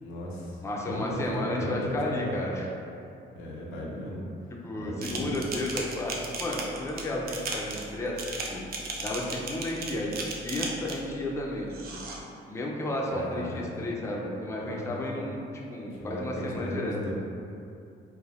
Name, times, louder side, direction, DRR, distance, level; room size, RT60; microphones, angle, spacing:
voice 1, 0.0-0.6 0.9-2.5 3.3-4.3 4.8-5.4 13.1-13.9 14.6-15.2 15.9-17.1, left 1 dB, 85° left, -3 dB, 0.5 m, -35 dB
voice 2, 0.6-2.7 4.6-8.6 9.0-10.2 10.4-12.0 12.5-15.4 15.7-17.0, left 1 dB, 15° left, -2 dB, 0.3 m, -32 dB
sound 1, 5.0-11.1 11.7-12.2, right 3 dB, 50° right, 0.4 m, -36 dB
3.3 x 2.1 x 2.3 m, 2.6 s
cardioid pair, 90°, 20 cm